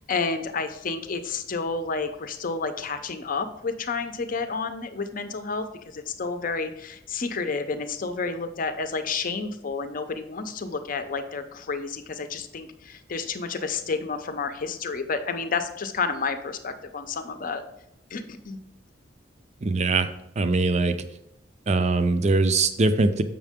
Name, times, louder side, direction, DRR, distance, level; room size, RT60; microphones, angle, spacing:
voice 1, 0.0-17.6 18.1-18.6, left 4 dB, 50° left, 9 dB, 0.6 m, -30 dB
voice 2, 19.6-20.1 20.4-21.0 21.7-23.2, right 3 dB, 40° right, 10 dB, 0.5 m, -22 dB
7.3 x 5.8 x 3.5 m, 0.79 s
head